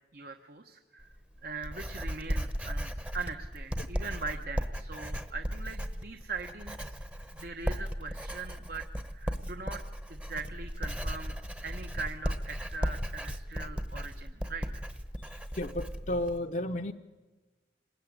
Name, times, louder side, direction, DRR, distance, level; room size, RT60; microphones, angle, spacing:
voice 1, 0.1-1.1 1.4-7.0 7.3-9.8 10.1-11.3 11.6-14.8, right 4 dB, 55° right, 5 dB, 1.2 m, -41 dB
Writing, 1.0-16.4, equal, 5° right, 1.0 m, -36 dB
voice 2, 15.2-16.9, left 1 dB, 45° left, 3 dB, 0.8 m, -33 dB
26.0 x 20.5 x 9.8 m, 1.3 s
head